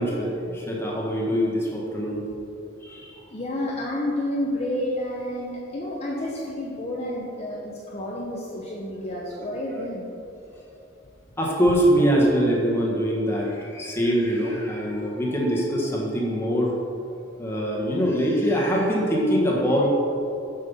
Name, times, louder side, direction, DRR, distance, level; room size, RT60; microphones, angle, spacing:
voice 1, 0.0-2.2 2.8-3.1 5.3-5.4 11.4-16.7 17.4-19.9, equal, 15° left, -4 dB, 1.5 m, -23 dB
voice 2, 3.3-10.1, left 1 dB, 35° left, -4 dB, 0.8 m, -30 dB
7.6 x 5.5 x 5.6 m, 2.8 s
head